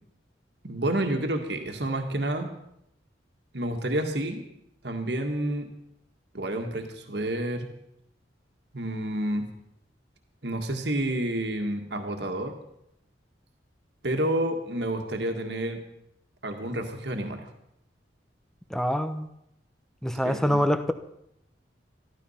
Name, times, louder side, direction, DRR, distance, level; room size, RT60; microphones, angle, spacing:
voice 1, 0.6-2.5 3.5-4.4 4.8-5.7 6.3-7.7 8.7-9.5 10.4-12.6 14.0-15.8 16.4-17.5 20.2-20.6, right 1 dB, 65° right, 4 dB, 1.8 m, -29 dB
voice 2, 18.7-19.3 20.0-20.9, equal, 5° left, 9 dB, 0.8 m, -25 dB
14.0 x 13.0 x 5.7 m, 0.78 s
head